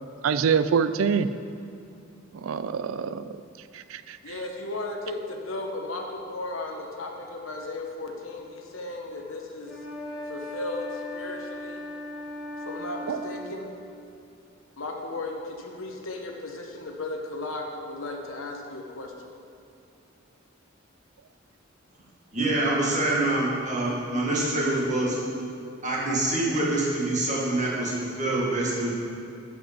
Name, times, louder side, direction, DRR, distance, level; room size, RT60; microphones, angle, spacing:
voice 1, 0.2-1.3 2.4-3.3 3.7-4.2 13.1-13.2, right 6 dB, 80° right, 12 dB, 0.4 m, -25 dB
voice 2, 4.2-9.8 10.3-11.8 12.6-13.7 14.8-19.3, left 2 dB, 80° left, 2 dB, 1.2 m, -35 dB
sound 1, 9.6-13.6, left 1 dB, 5° right, 1.4 m, -37 dB
voice 3, 22.3-25.2 25.8-28.9, right 2 dB, 40° right, -5 dB, 1.9 m, -25 dB
12.0 x 5.2 x 5.3 m, 2.5 s
head